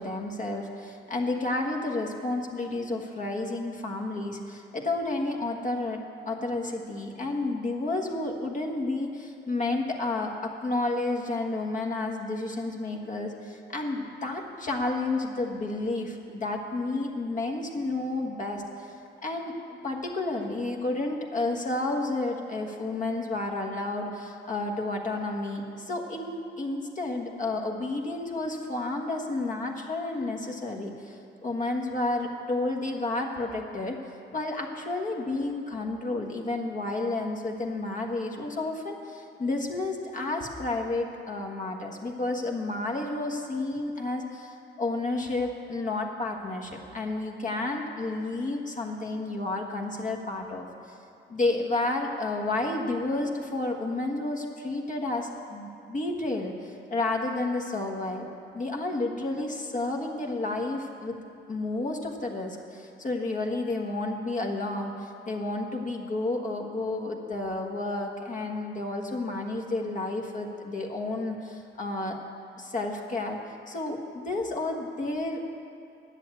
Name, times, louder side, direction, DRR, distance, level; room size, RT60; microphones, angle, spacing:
voice 1, 0.0-18.9 19.2-51.0 51.3-58.3 58.5-61.2 61.5-72.2 72.6-73.4 73.7-75.5, left 2 dB, 40° left, 1 dB, 1.5 m, -31 dB
10.5 x 8.1 x 8.2 m, 2.6 s
cardioid pair, 90°, 20 cm